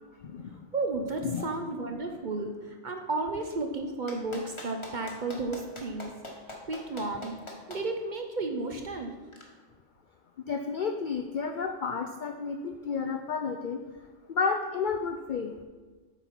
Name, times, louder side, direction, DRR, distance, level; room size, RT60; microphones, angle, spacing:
voice 1, 0.2-0.5 1.2-1.5 10.5-13.8 14.3-15.6, left 5 dB, 65° left, 6 dB, 0.5 m, -31 dB
voice 2, 0.7-6.4 6.7-7.4 7.7-9.1, right 3 dB, 45° right, 4 dB, 0.7 m, -33 dB
Clapping, 4.1-7.8 9.3-9.4, left 1 dB, 25° left, 1.2 m, -42 dB
8.0 x 4.4 x 5.7 m, 1.3 s
omnidirectional pair, 1.3 m